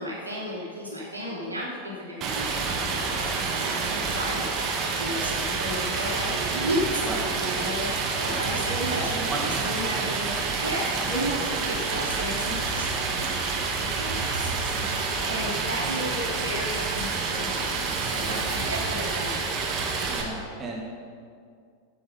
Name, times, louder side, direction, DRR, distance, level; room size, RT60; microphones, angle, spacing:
voice 1, 0.0-2.7 3.1-17.6 18.0-19.7, equal, 85° right, -6 dB, 3.2 m, -34 dB
Stream, 2.2-20.2, right 4 dB, 35° right, 1.9 m, -28 dB
voice 2, 3.9-4.4 7.0-7.2 8.3-8.5 9.1-10.4 14.7-15.0 18.2-18.6 20.1-20.8, right 2 dB, 20° right, -3 dB, 2.5 m, -37 dB
15.5 x 6.1 x 5.8 m, 2.2 s
figure-of-eight pair, 90°, 0 cm